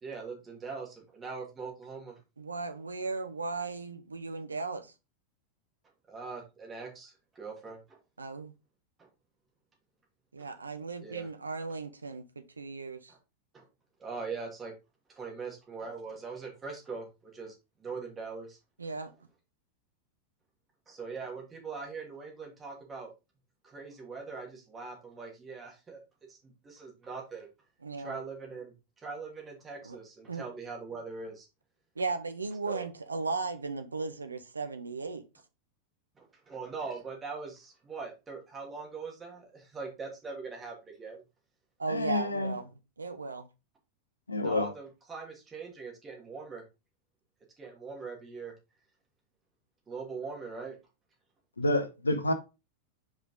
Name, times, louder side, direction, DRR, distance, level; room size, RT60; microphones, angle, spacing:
voice 1, 0.0-2.2 6.1-8.0 9.0-9.1 10.4-10.5 11.0-11.3 13.1-13.2 13.5-13.7 14.0-14.7 15.1-17.5 17.8-18.6 20.9-23.1 23.6-26.0 26.3-27.5 28.0-31.5 32.7-32.9 36.2-41.2 44.4-46.6 47.6-48.5 49.9-50.8, right 4 dB, 20° right, 2.4 m, -42 dB
voice 2, 2.4-4.9 8.2-8.5 10.3-13.1 18.8-19.1 27.8-28.1 29.8-30.0 30.3-30.4 32.0-35.2 41.8-43.4, right 4 dB, 75° right, 0.8 m, -36 dB
voice 3, 41.9-42.5 44.3-44.7 51.6-52.3, left 2 dB, 80° left, 0.9 m, -28 dB
5.4 x 5.0 x 3.7 m
figure-of-eight pair, 90°, 0 cm